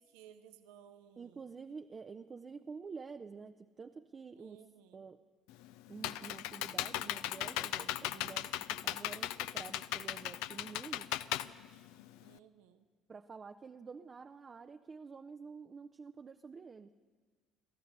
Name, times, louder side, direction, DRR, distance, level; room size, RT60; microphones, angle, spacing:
voice 1, 0.0-1.5 4.3-5.1 12.2-12.8, right 9 dB, 65° right, 9 dB, 0.9 m, -59 dB
voice 2, 1.2-4.6 4.9-5.2 5.9-11.1 13.1-16.9, right 5 dB, 30° right, 7 dB, 0.6 m, -49 dB
Computer keyboard, 5.5-12.4, left 14 dB, 65° left, 0.5 m, -38 dB
29.5 x 14.0 x 6.7 m, 1.5 s
figure-of-eight pair, 55°, 0 cm